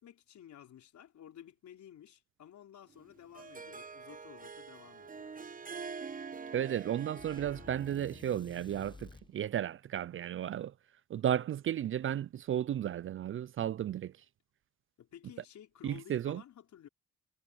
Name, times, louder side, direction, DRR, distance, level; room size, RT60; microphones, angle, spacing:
voice 1, 0.0-5.4 15.0-16.9, left 10 dB, 70° left, 5.3 m, -54 dB
Harp, 3.0-8.3, right 5 dB, 30° right, 1.0 m, -45 dB
voice 2, 6.5-10.7 11.1-14.1 15.8-16.4, right 10 dB, 45° right, 0.4 m, -34 dB
sound 1, 7.2-9.3, left 3 dB, 15° left, 0.7 m, -52 dB
cardioid pair, 90°, 30 cm